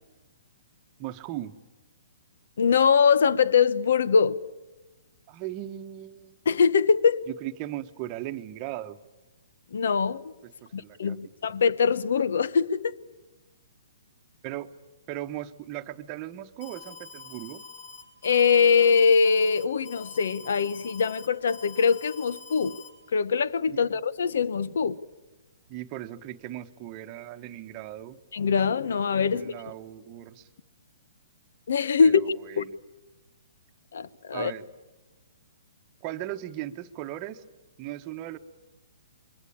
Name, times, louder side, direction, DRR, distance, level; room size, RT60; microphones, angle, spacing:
voice 1, 1.0-1.5 5.3-6.4 7.3-9.0 10.4-11.2 14.4-14.7 15.1-17.6 23.7-24.0 25.7-28.2 29.3-30.5 32.0-32.6 34.3-34.7 36.0-37.4 37.8-38.4, right 14 dB, 30° right, 8 dB, 1.1 m, -37 dB
voice 2, 2.6-4.4 6.4-7.3 9.7-10.3 10.7-13.0 18.2-22.8 23.1-25.0 28.3-29.5 31.7-32.2 32.6-32.7 33.9-34.5, left 6 dB, 70° left, 18 dB, 1.0 m, -22 dB
Alarm, 16.6-22.9, left 5 dB, 55° left, 5.5 m, -45 dB
28.0 x 23.0 x 8.6 m, 1.1 s
hypercardioid pair, 155°, 0 cm